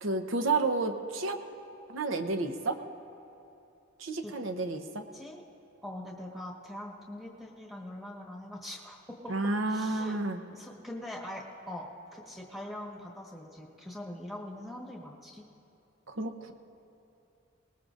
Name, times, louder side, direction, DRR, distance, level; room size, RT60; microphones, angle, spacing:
voice 1, 0.0-1.4 1.9-2.8 4.0-5.1 9.3-10.4 16.1-16.5, right 3 dB, 75° right, 7 dB, 0.9 m, -31 dB
voice 2, 5.8-9.3 9.6-10.2 10.5-15.4, left 1 dB, ahead, -2 dB, 1.4 m, -43 dB
21.0 x 19.5 x 2.5 m, 2.8 s
head